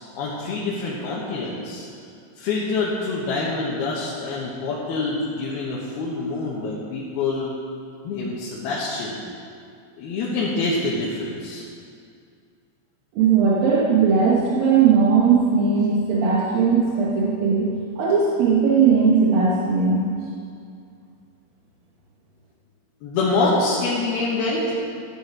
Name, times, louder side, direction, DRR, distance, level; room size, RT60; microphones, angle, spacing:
voice 1, 0.2-1.9 2.4-7.5 8.0-9.2 10.0-11.7 23.0-24.7, left 3 dB, 85° left, -5 dB, 3.3 m, -26 dB
voice 2, 13.2-17.7 18.0-20.1, right 5 dB, 70° right, -5 dB, 2.9 m, -18 dB
14.0 x 9.9 x 4.8 m, 2.3 s
omnidirectional pair, 4.3 m